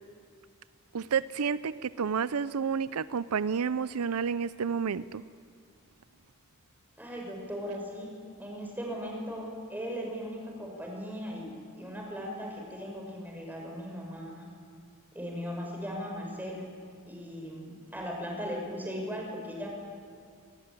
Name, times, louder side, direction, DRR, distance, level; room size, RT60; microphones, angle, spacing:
voice 1, 0.9-5.2, right 6 dB, 80° right, 16 dB, 0.5 m, -30 dB
voice 2, 7.0-14.5 15.1-16.6 17.1-19.7, equal, 10° right, 0 dB, 5.9 m, -38 dB
24.0 x 19.0 x 9.1 m, 2.2 s
head